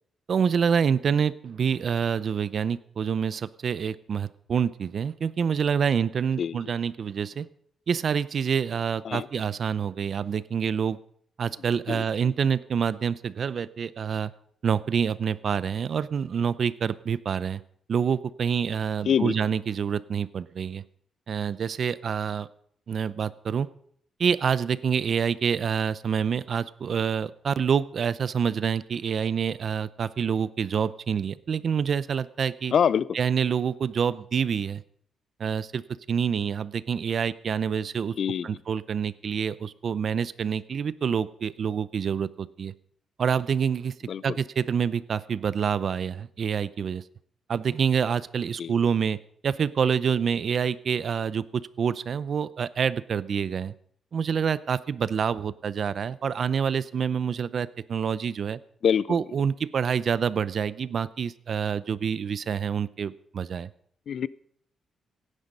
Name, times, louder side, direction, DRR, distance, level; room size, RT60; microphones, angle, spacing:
voice 1, 0.3-7.5 7.9-11.0 11.4-14.3 14.6-17.6 17.9-20.8 21.3-22.5 22.9-23.7 24.2-32.7 33.1-34.8 35.4-35.8 36.1-38.1 38.4-42.7 43.2-43.9 44.2-47.0 47.5-53.7 54.1-58.6 59.1-63.7, right 7 dB, 50° right, 0.6 m, -27 dB
voice 2, 32.7-33.1 38.2-38.5 44.1-44.2 48.6-48.7 58.8-59.1 64.1-64.3, left 8 dB, 60° left, 0.4 m, -24 dB
17.0 x 9.9 x 5.4 m
cardioid pair, 115°, 0 cm